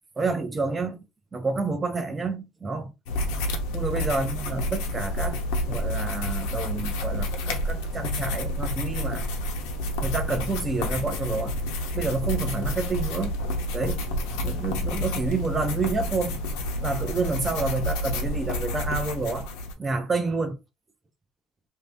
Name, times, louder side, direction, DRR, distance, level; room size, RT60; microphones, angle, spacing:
voice 1, 0.2-1.0 1.3-2.9 3.7-5.4 5.7-9.3 10.0-11.5 11.9-13.4 13.7-14.1 14.4-16.4 16.8-19.5 19.8-20.6, right 3 dB, 10° right, 0.5 m, -29 dB
sound 1, 3.1-19.7, left 1 dB, 70° left, 0.8 m, -29 dB
2.6 x 2.6 x 3.3 m
cardioid pair, 180°, 0 cm